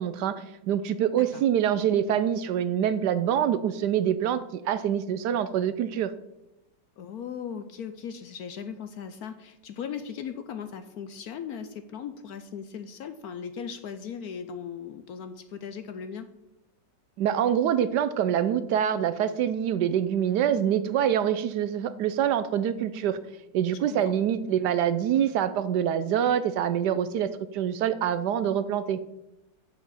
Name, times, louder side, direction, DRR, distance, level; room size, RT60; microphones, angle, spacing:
voice 1, 0.0-6.1 17.2-23.2 23.5-29.0, right 9 dB, 75° right, 13 dB, 1.1 m, -25 dB
voice 2, 7.0-16.3 23.9-24.0, left 7 dB, 65° left, 10 dB, 0.9 m, -38 dB
7.1 x 6.7 x 7.5 m, 0.92 s
omnidirectional pair, 2.0 m